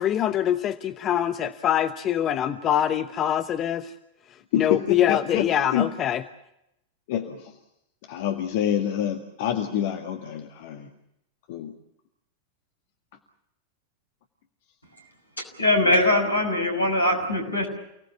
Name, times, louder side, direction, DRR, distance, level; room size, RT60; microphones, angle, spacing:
voice 1, 0.0-3.9 4.6-6.2, left 10 dB, 30° left, 10 dB, 1.0 m, -24 dB
voice 2, 4.5-5.9 7.1-7.5 8.1-10.9 11.5-11.7, left 10 dB, 50° left, 4 dB, 1.9 m, -27 dB
voice 3, 15.6-17.7, left 1 dB, 80° left, 5 dB, 6.4 m, -21 dB
29.5 x 18.5 x 7.2 m, 0.83 s
figure-of-eight pair, 90°, 0 cm